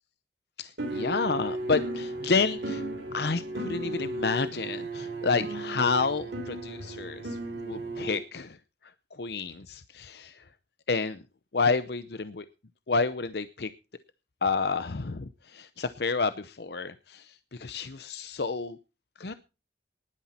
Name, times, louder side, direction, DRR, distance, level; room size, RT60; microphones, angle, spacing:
voice 1, 0.6-8.6 9.2-10.4 10.9-11.2 11.5-12.5 12.9-13.7 14.4-18.8 19.2-19.3, left 4 dB, 65° left, 12 dB, 0.7 m, -30 dB
sound 1, 0.8-8.2, right 1 dB, 85° right, 3.6 m, -35 dB
19.5 x 10.0 x 4.3 m, 0.32 s
head